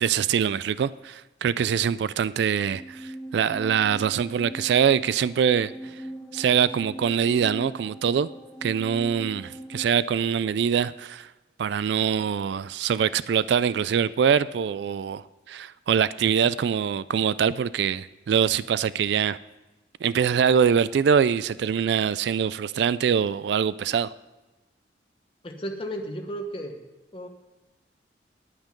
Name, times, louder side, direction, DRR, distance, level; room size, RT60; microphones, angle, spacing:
voice 1, 0.0-5.7 6.3-8.3 8.6-11.3 11.6-15.2 15.5-19.4 20.0-24.1, right 7 dB, 70° right, 0.3 m, -24 dB
sound 1, 2.7-10.0, right 1 dB, 5° left, 1.2 m, -41 dB
voice 2, 25.4-26.8 27.1-27.3, equal, 30° left, 1.2 m, -33 dB
9.8 x 8.9 x 5.2 m
head